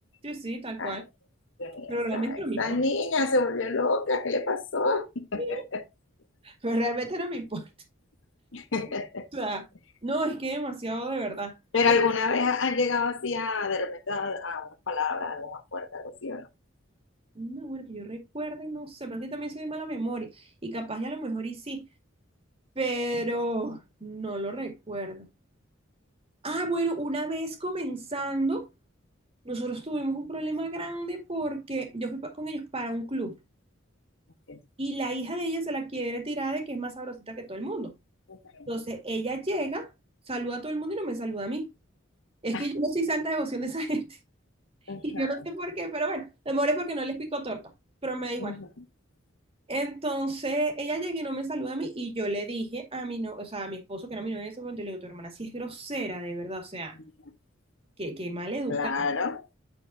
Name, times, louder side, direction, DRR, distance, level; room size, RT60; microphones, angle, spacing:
voice 1, 0.2-1.0 1.9-2.8 5.4-5.6 6.4-7.7 9.3-9.7 10.0-11.6 17.3-21.8 22.8-25.2 26.4-28.7 29.4-33.3 34.8-37.9 38.7-39.9 40.3-41.7 42.4-44.2 45.0-47.6 48.0-48.6 49.7-57.0 58.0-58.9, right 2 dB, 30° right, 2.2 m, -32 dB
voice 2, 1.6-5.8 8.5-9.3 11.7-16.5 34.5-34.6 38.3-38.7 42.5-42.6 44.9-45.4 48.4-48.7 58.7-59.5, left 4 dB, 65° left, 1.1 m, -28 dB
8.9 x 6.5 x 2.6 m
head